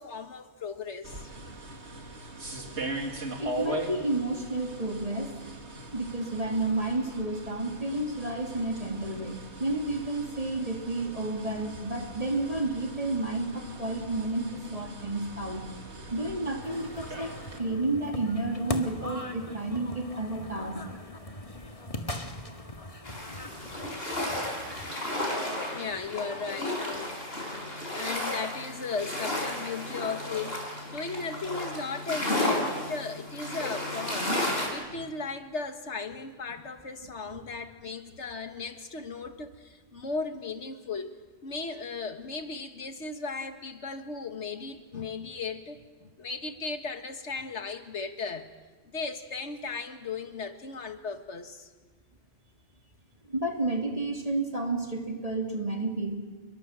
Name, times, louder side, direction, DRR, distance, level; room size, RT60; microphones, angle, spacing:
voice 1, 0.0-1.3 25.7-27.2 27.5-34.4 34.7-41.1 41.4-48.5 48.9-51.7, left 4 dB, 85° left, 7 dB, 2.0 m, -36 dB
sound 1, 1.0-17.6, right 2 dB, 85° right, 2.8 m, -40 dB
voice 2, 3.4-5.3 5.9-15.6 16.1-20.8 34.9-35.0 53.3-56.2, right 2 dB, 35° right, 2 dB, 3.2 m, -31 dB
sound 2, 16.6-24.9, left 1 dB, 30° left, 1.9 m, -40 dB
sound 3, 23.0-34.7, left 1 dB, 60° left, 6.1 m, -33 dB
28.0 x 22.5 x 7.6 m, 1.3 s
omnidirectional pair, 1.1 m